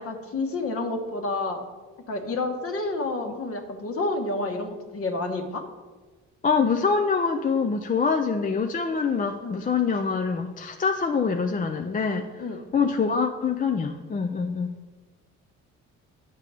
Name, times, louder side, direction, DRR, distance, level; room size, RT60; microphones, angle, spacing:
voice 1, 0.0-1.6 2.1-5.7 9.4-9.6 12.4-12.6, left 2 dB, 50° left, 4 dB, 1.2 m, -29 dB
voice 2, 6.4-12.4 12.7-14.7, left 5 dB, 25° left, 5 dB, 0.5 m, -25 dB
10.5 x 6.7 x 3.4 m, 1.4 s
cardioid pair, 90°, 30 cm